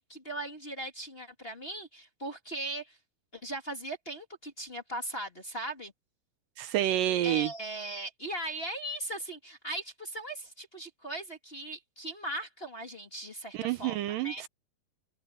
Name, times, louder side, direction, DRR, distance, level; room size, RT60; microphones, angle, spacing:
voice 1, 0.0-3.0 3.3-5.9 7.2-14.4, right 1 dB, 20° left, 2.2 m, -39 dB
voice 2, 6.6-7.5 13.5-14.5, right 13 dB, 80° right, 2.2 m, -28 dB
omnidirectional pair, 4.2 m